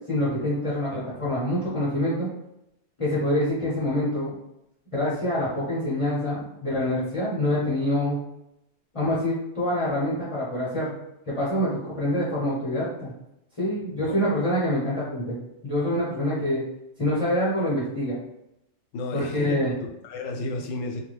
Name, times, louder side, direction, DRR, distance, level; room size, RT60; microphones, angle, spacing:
voice 1, 0.1-0.9 1.2-2.3 3.0-4.3 4.9-8.2 8.9-11.0 11.3-13.1 13.6-15.3 15.6-16.6 17.0-18.2 19.1-19.7, left 1 dB, 30° left, -7 dB, 0.7 m, -26 dB
voice 2, 18.9-21.0, left 2 dB, 85° left, 3 dB, 1.0 m, -33 dB
2.7 x 2.2 x 3.2 m, 0.84 s
omnidirectional pair, 1.3 m